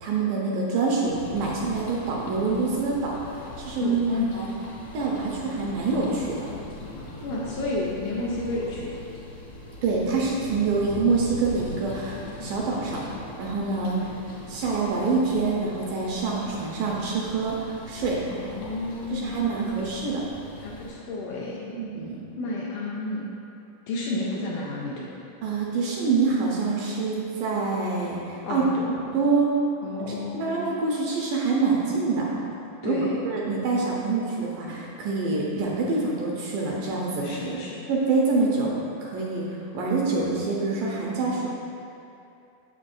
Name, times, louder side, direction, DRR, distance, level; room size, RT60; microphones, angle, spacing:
voice 1, 0.0-3.9 4.3-4.5 4.9-6.5 9.8-13.1 13.4-14.1 14.5-18.2 19.1-20.2 21.7-22.2 25.4-28.6 29.0-29.5 30.1-32.3 32.8-33.0 33.3-37.4 37.9-38.7 39.0-41.5, right 4 dB, 80° right, -3 dB, 2.0 m, -26 dB
sound 1, 1.0-20.9, left 2 dB, 60° left, 1.7 m, -41 dB
voice 2, 3.8-4.3 7.2-8.9 18.3-19.5 20.6-21.7 22.4-23.3 23.9-25.3 28.4-28.9 29.8-30.6 32.8-33.2 37.2-37.9, left 1 dB, 80° left, -5 dB, 1.9 m, -30 dB
7.0 x 6.1 x 2.5 m, 2.7 s
omnidirectional pair, 4.1 m